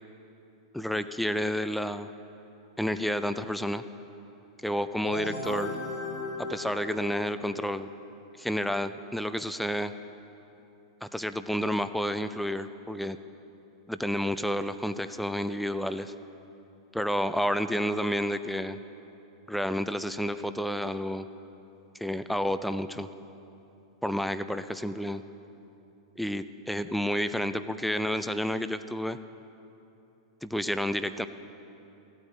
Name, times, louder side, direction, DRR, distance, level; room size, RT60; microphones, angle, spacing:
voice 1, 0.7-2.1 2.8-3.8 4.6-5.7 6.4-7.9 8.4-9.9 11.0-13.2 13.9-16.1 16.9-18.8 19.5-21.3 22.0-23.1 24.0-25.2 26.2-29.2 30.4-31.3, equal, ahead, 11 dB, 0.4 m, -30 dB
sound 1, 5.0-7.7, left 2 dB, 55° left, 1.6 m, -36 dB
15.0 x 9.0 x 8.2 m, 2.9 s
figure-of-eight pair, 95°, 2 cm